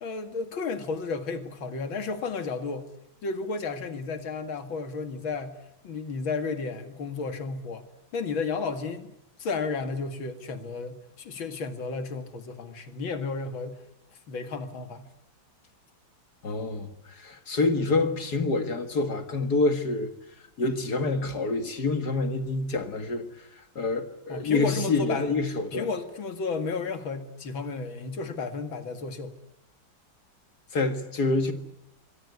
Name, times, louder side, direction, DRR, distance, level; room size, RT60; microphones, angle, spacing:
voice 1, 0.0-2.9 3.2-5.6 5.8-7.8 8.1-9.1 9.4-13.8 14.3-15.1 24.3-25.3 25.7-29.3, left 4 dB, 80° left, 2.8 m, -32 dB
voice 2, 16.4-20.1 20.6-23.3 23.8-25.9 30.7-31.5, left 3 dB, 55° left, 2.3 m, -27 dB
26.0 x 24.0 x 8.4 m
omnidirectional pair, 2.2 m